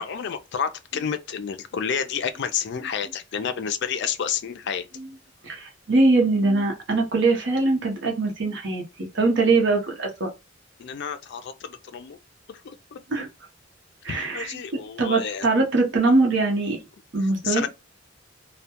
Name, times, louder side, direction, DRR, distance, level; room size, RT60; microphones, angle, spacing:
voice 1, 0.0-4.9 10.8-12.2 12.6-13.0 14.1-15.5 17.4-17.7, left 7 dB, 60° left, 0.4 m, -30 dB
voice 2, 5.4-10.3 13.1-13.3 14.0-16.8 17.1-17.7, right 3 dB, 65° right, 0.7 m, -22 dB
2.2 x 2.1 x 2.8 m
head